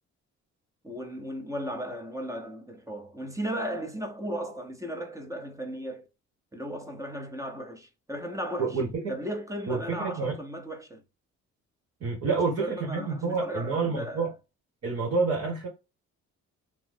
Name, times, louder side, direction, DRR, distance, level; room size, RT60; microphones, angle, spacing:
voice 1, 0.8-6.1 6.5-8.8 9.1-11.0 12.3-14.3, equal, 10° right, 0.7 m, -36 dB
voice 2, 8.6-9.1 9.7-10.4 12.0-14.3 14.8-15.7, right 4 dB, 55° right, 1.3 m, -28 dB
3.0 x 2.0 x 3.3 m
cardioid pair, 90°, 30 cm